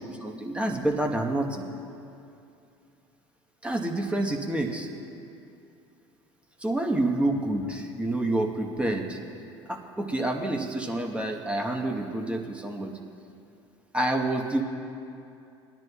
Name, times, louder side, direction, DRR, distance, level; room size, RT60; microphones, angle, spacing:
voice 1, 0.0-1.7 3.6-4.9 6.6-9.2 9.7-12.9 13.9-14.6, right 1 dB, 10° right, 1 dB, 1.3 m, -28 dB
19.0 x 10.5 x 2.4 m, 2.6 s
hypercardioid pair, 75°, 14 cm